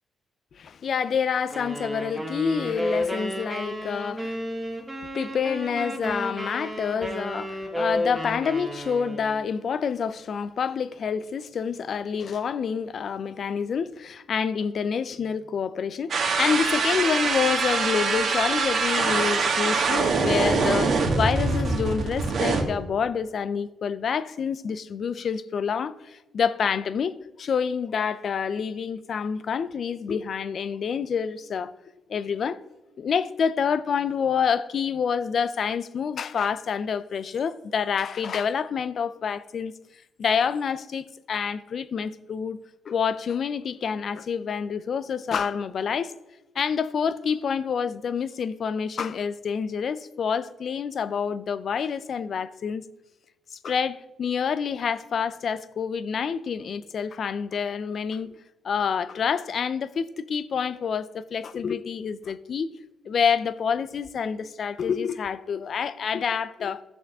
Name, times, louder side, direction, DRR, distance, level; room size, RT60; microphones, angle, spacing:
voice 1, 0.5-4.4 5.1-31.7 32.1-32.6 33.0-39.7 40.2-42.6 42.9-46.1 46.5-52.8 53.5-58.3 58.6-62.7 63.1-66.8, left 6 dB, 55° left, 0.5 m, -27 dB
sound 1, 1.5-9.4, equal, 5° right, 1.9 m, -32 dB
sound 2, 16.1-22.6, right 4 dB, 60° right, 1.9 m, -24 dB
15.0 x 6.3 x 3.7 m
cardioid pair, 95°, 0 cm